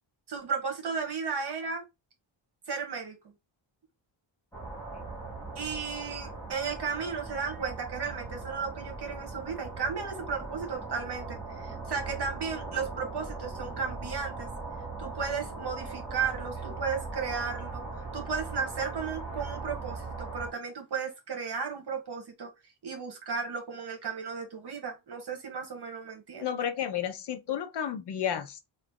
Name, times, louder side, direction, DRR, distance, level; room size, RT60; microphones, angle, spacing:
voice 1, 0.3-1.8 2.7-3.2 5.5-14.5 15.0-17.8 18.1-22.5 22.8-26.5, right 5 dB, 55° right, 1.2 m, -34 dB
sound 1, 4.5-20.5, right 3 dB, 5° left, 1.4 m, -39 dB
voice 2, 26.4-28.7, left 9 dB, 60° left, 0.6 m, -32 dB
2.9 x 2.6 x 3.5 m
wide cardioid pair, 175°, 47 cm